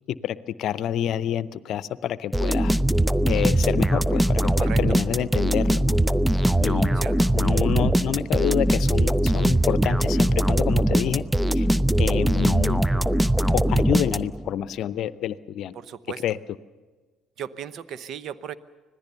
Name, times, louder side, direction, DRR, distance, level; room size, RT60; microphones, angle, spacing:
voice 1, 0.2-2.7 3.3-6.0 6.6-7.0 7.3-11.2 11.5-11.7 12.0-12.8 13.5-15.7 16.2-16.4, left 10 dB, 60° left, 17 dB, 0.7 m, -28 dB
sound 1, 2.3-14.5, right 1 dB, 5° right, 0.6 m, -21 dB
voice 2, 7.0-7.3 15.7-16.2 17.4-18.6, right 9 dB, 60° right, 15 dB, 0.9 m, -36 dB
25.5 x 18.0 x 6.9 m, 1.4 s
hypercardioid pair, 55°, 0 cm